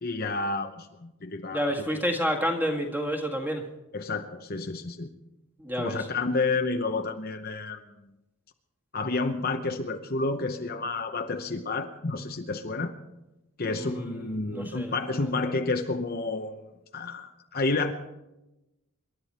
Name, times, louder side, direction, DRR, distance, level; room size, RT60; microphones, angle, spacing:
voice 1, 0.0-1.9 3.9-5.1 5.8-7.8 8.9-12.9 13.6-16.6 16.9-17.9, left 3 dB, 45° left, 5 dB, 0.9 m, -30 dB
voice 2, 1.5-3.6 5.6-6.0 13.7-14.9, equal, 10° right, 2 dB, 1.9 m, -29 dB
27.0 x 12.0 x 4.3 m, 0.96 s
head